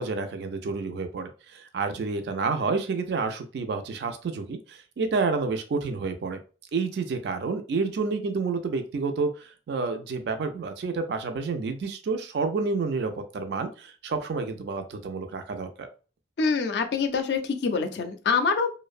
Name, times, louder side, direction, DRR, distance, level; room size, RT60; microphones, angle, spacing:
voice 1, 0.0-6.4 6.7-15.9, right 4 dB, 65° right, 7 dB, 0.3 m, -29 dB
voice 2, 16.4-18.7, left 5 dB, 65° left, 7 dB, 0.4 m, -25 dB
2.5 x 2.0 x 2.4 m, 0.35 s
head